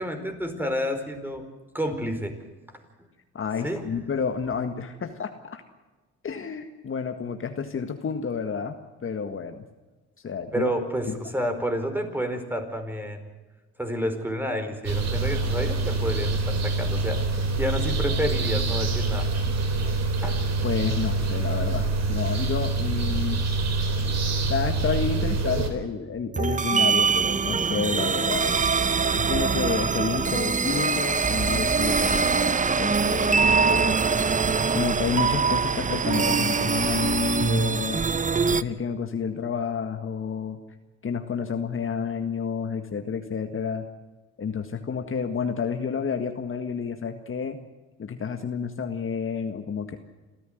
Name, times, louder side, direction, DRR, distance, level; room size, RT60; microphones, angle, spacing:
voice 1, 0.0-1.4 1.7-2.3 3.6-3.8 10.5-13.3 13.8-17.2 17.6-19.3 20.2-20.4, equal, 5° right, 6 dB, 4.7 m, -29 dB
voice 2, 3.3-5.6 6.2-8.8 9.0-9.6 10.2-10.7 20.6-23.4 24.5-28.6 29.1-34.0 34.7-38.0 38.5-40.6 41.0-43.8 44.4-47.6 48.0-50.0, left 6 dB, 45° left, 6 dB, 1.8 m, -30 dB
sound 1, 14.8-25.7, right 3 dB, 60° right, 4.2 m, -26 dB
sound 2, 26.3-38.6, right 5 dB, 25° right, 0.8 m, -23 dB
27.0 x 14.5 x 7.9 m, 1.2 s
cardioid pair, 90°, 30 cm